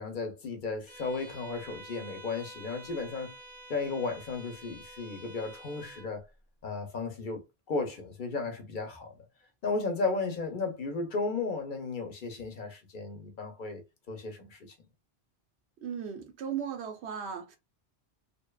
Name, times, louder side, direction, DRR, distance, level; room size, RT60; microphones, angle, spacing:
voice 1, 0.0-3.4 3.7-6.3 6.6-7.4 7.7-9.1 9.6-14.7, left 4 dB, 55° left, 0.7 m, -34 dB
Bowed string instrument, 0.9-6.2, right 1 dB, 10° right, 0.5 m, -49 dB
voice 2, 15.8-17.6, right 8 dB, 85° right, 0.9 m, -36 dB
2.7 x 2.1 x 2.2 m
omnidirectional pair, 1.1 m